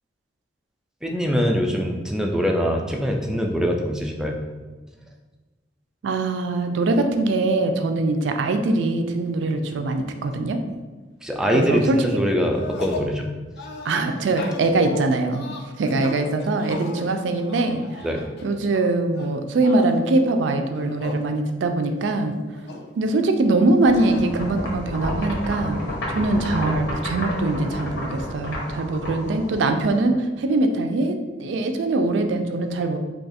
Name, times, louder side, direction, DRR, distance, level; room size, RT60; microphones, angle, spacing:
voice 1, 1.0-4.4 11.2-13.3 18.0-18.2, equal, 5° right, 1 dB, 0.3 m, -23 dB
voice 2, 6.0-10.6 11.5-12.1 13.8-15.5 15.8-17.8 18.4-22.4 23.0-25.8 26.1-33.0, right 2 dB, 85° right, 6 dB, 0.4 m, -22 dB
sound 1, 12.4-13.1 13.6-18.8 19.1-20.0 20.6-21.2 21.6-21.7 22.0-22.9 23.9-24.2, left 3 dB, 65° left, 0.4 m, -36 dB
sound 2, 23.8-30.0, left 1 dB, 80° left, 1.0 m, -30 dB
2.8 x 2.3 x 4.1 m, 1.3 s
head